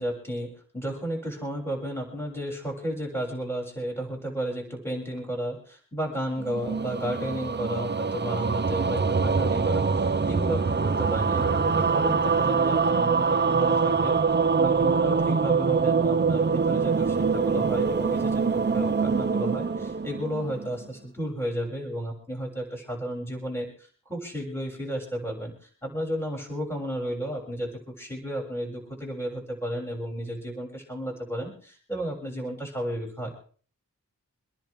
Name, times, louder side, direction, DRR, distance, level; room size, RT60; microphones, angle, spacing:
voice 1, 0.0-14.2 14.5-33.3, equal, 5° left, -1 dB, 7.1 m, -33 dB
sound 1, 6.4-20.8, right 5 dB, 35° right, 0.7 m, -24 dB
27.0 x 10.5 x 3.6 m, 0.43 s
cardioid pair, 60°, 32 cm